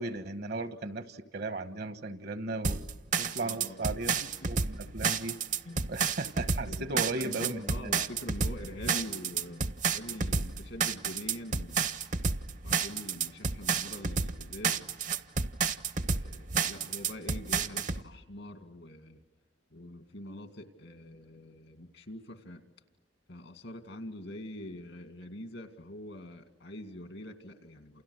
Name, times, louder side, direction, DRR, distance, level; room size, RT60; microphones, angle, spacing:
voice 1, 0.0-4.2 4.5-5.4 5.9-8.1, right 2 dB, 60° right, 11 dB, 1.2 m, -36 dB
sound 1, 2.6-18.0, right 5 dB, 45° right, 0.8 m, -30 dB
voice 2, 3.4-3.8 4.5-4.9 5.7-5.9 6.7-11.9 12.6-14.9 15.9-19.2 19.7-22.6 23.3-28.0, left 1 dB, 75° left, 6 dB, 2.3 m, -44 dB
30.0 x 28.5 x 6.5 m, 1.1 s
head